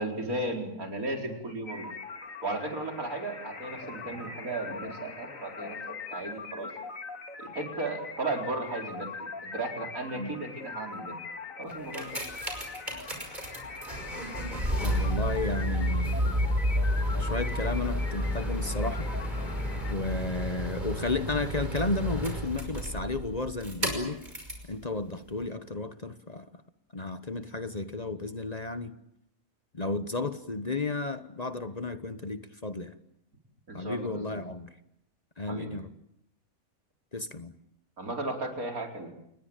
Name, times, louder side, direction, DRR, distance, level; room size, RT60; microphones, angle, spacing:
voice 1, 0.0-1.9 2.4-5.8 6.1-6.7 7.4-11.1 11.6-12.2 33.7-34.4 35.5-35.7 38.0-39.1, right 2 dB, 75° right, 3 dB, 5.0 m, -35 dB
sound 1, 1.7-19.9, left 4 dB, 65° left, 2.5 m, -42 dB
sound 2, 11.7-24.7 25.4-25.5, equal, 30° right, 5.9 m, -31 dB
voice 2, 14.8-16.3 17.2-19.1 19.9-24.2 24.7-26.5 26.9-28.9 29.7-32.9 33.7-34.7 35.4-35.9 37.1-37.5, left 3 dB, 30° left, 11 dB, 1.1 m, -33 dB
28.5 x 21.0 x 8.9 m, 0.77 s
omnidirectional pair, 1.5 m